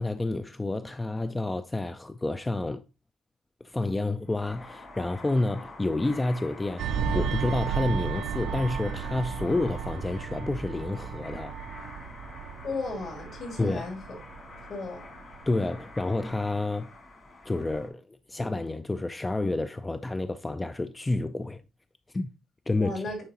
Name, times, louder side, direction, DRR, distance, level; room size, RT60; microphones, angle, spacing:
voice 1, 0.0-2.8 3.6-11.5 13.6-13.8 15.5-16.9 17.5-21.6 22.1-22.3 22.7-23.0, left 2 dB, 15° left, 0.3 m, -29 dB
sound 1, 4.2-17.9, left 3 dB, 45° left, 2.1 m, -46 dB
sound 2, 6.8-15.8 16.2-16.4, right 7 dB, 80° right, 0.4 m, -34 dB
voice 2, 12.6-14.2 14.7-15.0 22.8-23.2, left 3 dB, 60° left, 2.7 m, -34 dB
9.6 x 3.7 x 2.8 m
cardioid pair, 95°, 0 cm